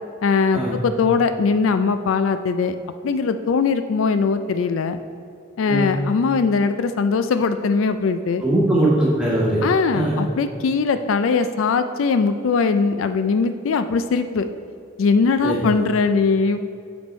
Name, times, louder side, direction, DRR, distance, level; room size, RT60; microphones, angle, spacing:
voice 1, 0.2-2.8 3.0-5.0 5.6-8.4 9.6-14.5 15.0-16.6, left 4 dB, 85° left, 10 dB, 0.4 m, -20 dB
voice 2, 8.4-9.6 9.9-10.2 15.4-15.6, right 1 dB, 5° right, -7 dB, 1.7 m, -20 dB
7.1 x 6.1 x 4.3 m, 2.4 s
head